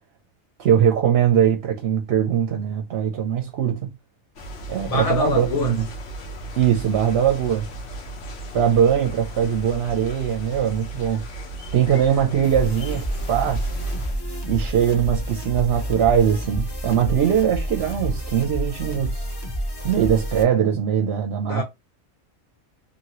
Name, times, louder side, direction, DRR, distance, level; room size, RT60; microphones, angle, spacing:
voice 1, 0.6-3.9 4.7-5.8 6.6-7.7 8.5-11.2 11.7-13.7 14.5-19.2 19.8-21.6, right 9 dB, 60° right, 0.7 m, -21 dB
sound 1, 4.4-14.2, right 2 dB, 65° left, 1.1 m, -36 dB
voice 2, 4.9-5.8 21.4-21.6, left 4 dB, 90° left, 1.7 m, -24 dB
sound 2, 12.4-20.4, equal, 25° left, 0.5 m, -29 dB
2.8 x 2.8 x 2.9 m
omnidirectional pair, 1.4 m